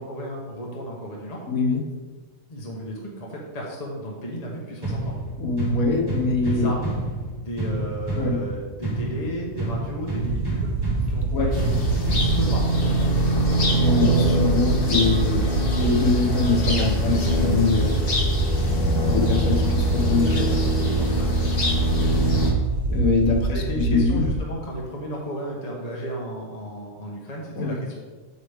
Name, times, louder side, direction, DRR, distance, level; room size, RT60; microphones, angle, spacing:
voice 1, 0.0-1.4 2.5-5.2 6.3-7.0 7.3-10.7 11.1-13.8 21.0-21.4 23.5-27.9, equal, 30° left, -3 dB, 1.2 m, -34 dB
voice 2, 1.5-1.9 5.4-6.7 8.2-8.4 11.3-11.4 13.8-18.0 19.0-20.6 22.9-24.3 27.6-27.9, left 4 dB, 80° left, 1 dB, 1.6 m, -23 dB
sound 1, 4.8-12.8, right 1 dB, 15° right, 1.3 m, -29 dB
sound 2, 10.2-24.4, right 3 dB, 55° right, 0.8 m, -25 dB
sound 3, 11.5-22.5, right 1 dB, 45° left, 1.4 m, -24 dB
8.1 x 7.1 x 3.5 m, 1.4 s
omnidirectional pair, 1.4 m